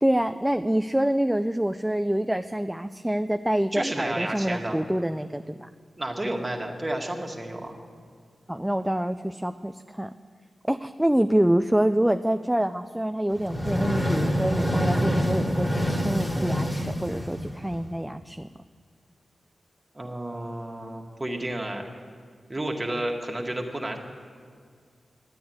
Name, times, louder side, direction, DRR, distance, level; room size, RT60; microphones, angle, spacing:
voice 1, 0.0-5.7 8.5-10.1 10.7-18.5, right 1 dB, 5° right, 8 dB, 0.4 m, -26 dB
voice 2, 3.7-4.8 6.0-7.8 19.9-21.9 22.5-24.0, right 1 dB, 25° right, 1 dB, 1.9 m, -31 dB
sound 1, 13.3-17.9, equal, 20° left, 2.2 m, -26 dB
12.5 x 9.4 x 9.3 m, 2.1 s
cardioid pair, 65°, 0 cm